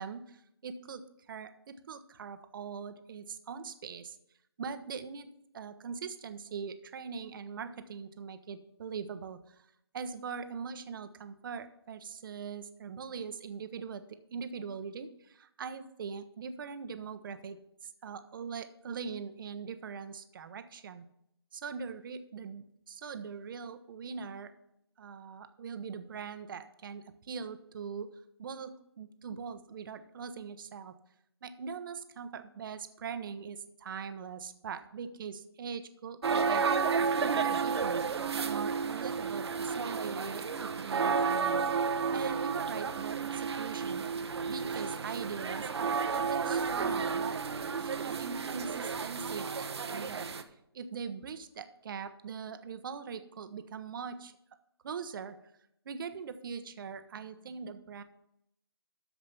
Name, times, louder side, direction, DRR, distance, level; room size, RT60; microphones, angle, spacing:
voice 1, 0.0-4.2 4.6-9.7 9.9-17.6 17.8-21.1 21.5-24.5 25.0-28.1 28.4-30.9 31.4-36.7 37.0-38.2 38.4-41.7 42.1-44.1 44.5-50.3 50.7-54.3 54.8-55.4 55.8-58.0, right 6 dB, 55° right, 10 dB, 0.9 m, -41 dB
sound 1, 36.2-50.4, right 5 dB, 75° right, 1.0 m, -32 dB
13.0 x 5.0 x 5.7 m, 0.77 s
hypercardioid pair, 150°, 14 cm